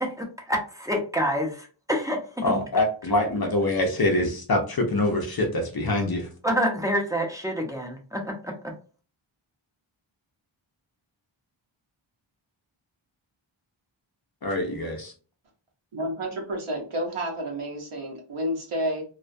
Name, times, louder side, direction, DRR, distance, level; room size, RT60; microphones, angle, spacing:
voice 1, 0.0-2.6 6.4-8.5, equal, 5° right, 1 dB, 0.6 m, -27 dB
voice 2, 2.4-6.3 14.4-15.1, left 1 dB, 50° left, 3 dB, 0.6 m, -25 dB
voice 3, 15.9-19.0, equal, 85° right, 0 dB, 0.8 m, -30 dB
2.3 x 2.1 x 2.5 m, 0.38 s
wide cardioid pair, 60°, 49 cm